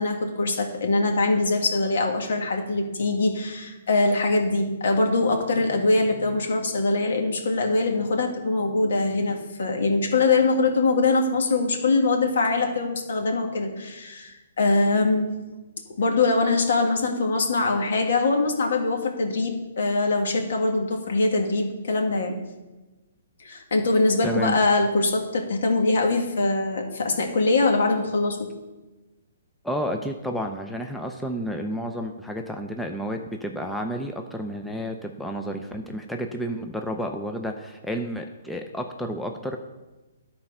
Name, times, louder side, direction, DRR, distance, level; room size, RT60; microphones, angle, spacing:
voice 1, 0.0-15.4 16.0-22.4 23.4-28.5, left 3 dB, 70° left, 2 dB, 1.8 m, -23 dB
voice 2, 24.2-24.6 29.6-39.6, equal, ahead, 3 dB, 0.4 m, -31 dB
11.0 x 4.3 x 5.4 m, 1.1 s
hypercardioid pair, 160°, 0 cm